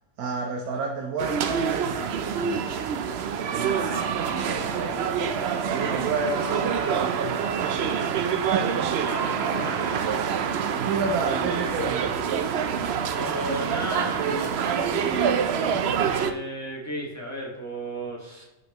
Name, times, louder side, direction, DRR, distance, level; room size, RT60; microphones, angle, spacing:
voice 1, 0.2-2.7 3.5-4.9 5.4-8.7 10.5-12.1, right 4 dB, 75° right, 3 dB, 1.4 m, -31 dB
sound 1, 1.2-16.3, right 7 dB, 60° right, 0.7 m, -26 dB
voice 2, 3.8-5.1 9.1-10.3 13.1-18.4, right 1 dB, 10° left, -3 dB, 1.9 m, -35 dB
10.5 x 5.1 x 3.0 m, 1.0 s
omnidirectional pair, 1.6 m